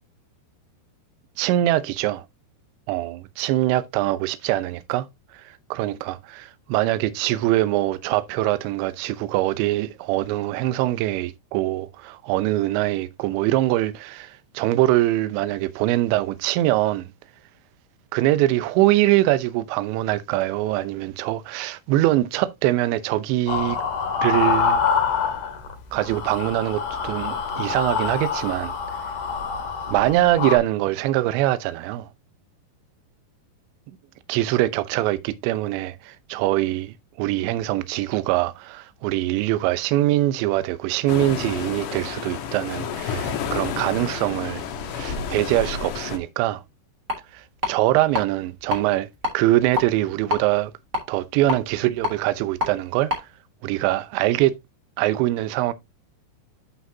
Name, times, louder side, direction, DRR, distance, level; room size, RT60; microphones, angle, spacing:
voice 1, 1.4-2.2 2.9-5.1 5.7-17.1 18.1-23.8 24.2-24.8 25.9-28.7 29.9-32.1 34.3-44.6 44.9-46.6 47.3-49.1 49.3-50.7 51.1-53.1 53.6-54.6 55.0-55.7, right 15 dB, 80° right, 3.0 m, -23 dB
sound 1, 23.5-25.7 26.0-30.6, left 6 dB, 55° left, 2.6 m, -25 dB
sound 2, 41.1-46.2, left 7 dB, 75° left, 1.9 m, -30 dB
sound 3, 47.1-47.2 47.6-48.2 48.6-48.8 49.2-50.4 50.9-52.7 53.1-53.2, left 3 dB, 25° right, 1.9 m, -26 dB
11.5 x 5.0 x 2.7 m
omnidirectional pair, 5.4 m